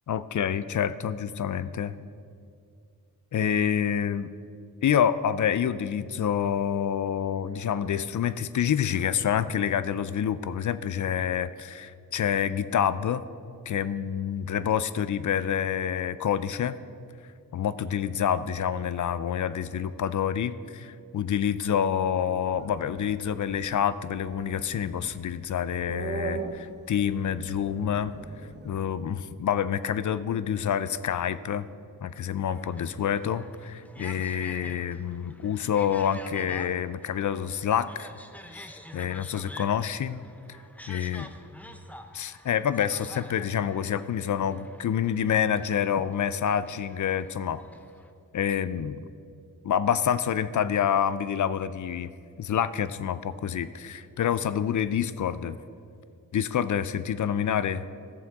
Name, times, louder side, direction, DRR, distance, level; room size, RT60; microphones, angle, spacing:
voice 1, 0.1-1.9 3.3-4.3 4.8-13.2 13.7-16.8 17.5-28.1 28.6-31.7 32.0-38.1 38.5-40.2 40.9-41.2 42.1-47.6 48.3-49.1 49.6-52.1 52.4-55.6 56.3-57.8, left 8 dB, 55° left, 15 dB, 0.5 m, -27 dB
sound 1, 22.5-28.8, right 4 dB, 30° right, 0.8 m, -40 dB
sound 2, 32.5-48.1, equal, 5° left, 0.6 m, -48 dB
14.0 x 7.3 x 3.6 m, 2.4 s
cardioid pair, 60°, 37 cm